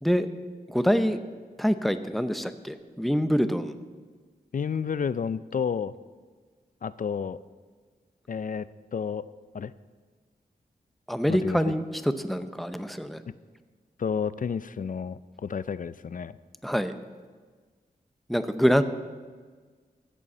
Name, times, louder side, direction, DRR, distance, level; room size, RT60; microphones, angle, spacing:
voice 1, 0.7-1.2 1.6-3.8 11.1-13.2 16.6-16.9 18.3-18.8, equal, ahead, 10 dB, 0.7 m, -25 dB
voice 2, 4.5-5.9 6.8-7.4 8.3-9.2 9.5-9.7 11.3-11.6 14.0-16.4, left 6 dB, 50° left, 17 dB, 0.4 m, -31 dB
14.0 x 6.9 x 7.4 m, 1.5 s
wide cardioid pair, 80°, 17 cm